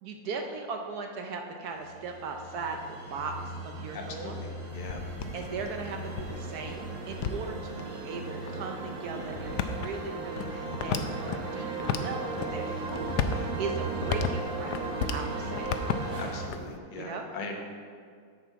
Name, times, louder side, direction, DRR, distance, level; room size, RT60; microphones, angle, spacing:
voice 1, 0.0-4.4 5.3-15.7 16.9-17.3, right 4 dB, 70° right, 3 dB, 0.9 m, -38 dB
sound 1, 1.8-16.5, right 3 dB, 50° right, 1.4 m, -36 dB
voice 2, 3.9-4.5 4.7-5.0 16.1-17.7, left 3 dB, 60° left, 1 dB, 0.5 m, -39 dB
sound 2, 4.7-7.8 8.5-8.6 9.2-11.4 11.8-12.5 12.9-15.2 15.5-16.8, left 7 dB, 80° left, 0.9 m, -34 dB
7.5 x 7.0 x 4.6 m, 2.1 s
omnidirectional pair, 2.2 m